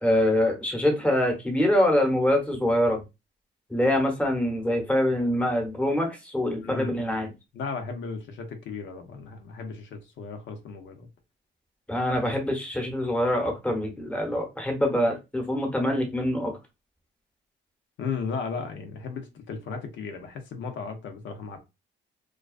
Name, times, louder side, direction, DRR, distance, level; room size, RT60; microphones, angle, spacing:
voice 1, 0.0-3.0 3.7-7.3 11.9-16.6, left 1 dB, 5° left, 0.8 m, -24 dB
voice 2, 6.6-7.0 7.5-11.1 18.0-21.6, left 5 dB, 70° left, 0.6 m, -35 dB
2.3 x 2.3 x 2.3 m
cardioid pair, 90°, 20 cm